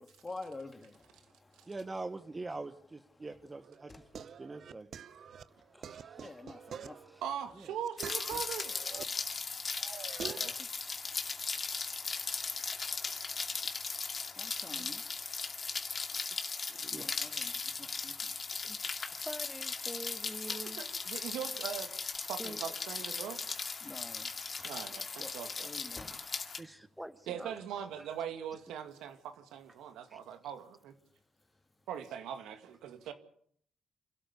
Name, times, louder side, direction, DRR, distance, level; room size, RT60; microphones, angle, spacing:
voice 1, 0.0-1.9 3.1-3.3 3.9-4.2 5.5-7.2 8.3-8.5 9.3-9.5 10.0-19.3 20.6-20.8 23.4-23.5 23.8-26.5 29.8-30.0, left 3 dB, 20° left, 2.2 m, -52 dB
voice 2, 1.7-4.9 7.6-7.7 16.7-17.2 26.1-26.2 26.6-26.8, right 3 dB, 25° right, 1.2 m, -44 dB
sound 1, 3.6-9.0 9.4-10.6, right 8 dB, 60° right, 0.8 m, -47 dB
voice 3, 5.7-6.2 10.5-11.1 11.9-12.2 18.6-20.8 22.4-22.6 24.5-24.6 26.0-26.1 26.6-27.6 30.1-30.2, equal, ahead, 1.3 m, -47 dB
voice 4, 7.2-8.7 10.4-10.5 14.7-14.9 20.5-21.9 22.3-23.4 24.6-25.7 27.3-30.9 31.9-33.1, right 9 dB, 85° right, 2.2 m, -41 dB
Rain, 8.0-26.6, left 4 dB, 35° left, 2.4 m, -38 dB
27.5 x 12.5 x 8.4 m
cardioid pair, 90°, 0 cm